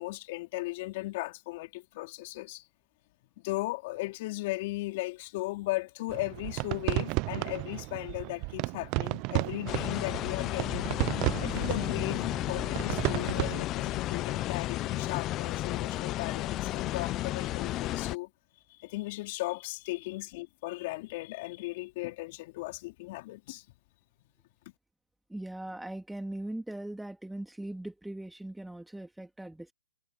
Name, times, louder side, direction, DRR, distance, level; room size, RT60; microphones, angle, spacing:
voice 1, 0.0-2.6 3.4-11.0 11.4-18.3 18.7-23.6, left 20 dB, 40° left, 3.7 m, -37 dB
sound 1, 6.1-13.6, right 26 dB, 30° right, 0.5 m, -33 dB
sound 2, 9.7-18.2, left 15 dB, 25° left, 0.6 m, -33 dB
voice 2, 25.3-29.7, right 1 dB, ahead, 2.9 m, -40 dB
hypercardioid pair, 150°, 0 cm